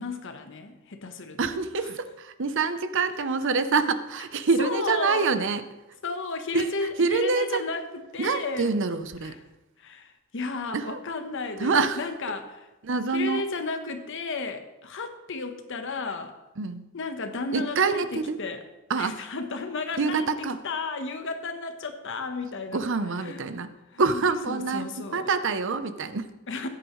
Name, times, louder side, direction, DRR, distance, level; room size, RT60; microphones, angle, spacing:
voice 1, 0.0-1.4 1.8-1.9 4.6-5.3 6.0-8.7 9.2-9.4 9.8-12.7 13.1-16.3 16.9-18.6 19.0-20.3 20.6-22.8 23.2-23.4 23.9-24.2 24.5-25.3 26.5-26.7, left 3 dB, 60° left, 7 dB, 1.1 m, -33 dB
voice 2, 1.4-5.6 6.5-6.7 7.0-7.6 8.2-9.4 10.7-11.0 11.6-12.0 12.8-13.4 16.6-16.8 17.5-18.4 18.9-19.2 20.0-20.6 22.7-23.7 24.0-26.3, right 4 dB, 60° right, 11 dB, 0.7 m, -26 dB
15.0 x 9.9 x 3.2 m, 1.0 s
head